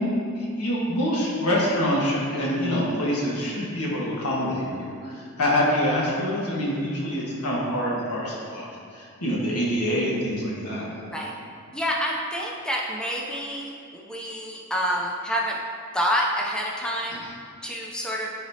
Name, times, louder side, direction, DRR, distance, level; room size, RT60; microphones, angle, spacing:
voice 1, 0.3-10.9, equal, 85° left, -5 dB, 1.5 m, -26 dB
voice 2, 11.7-15.6 15.9-17.2 17.6-18.3, equal, 5° left, -3 dB, 0.5 m, -28 dB
10.0 x 4.1 x 2.8 m, 2.4 s
head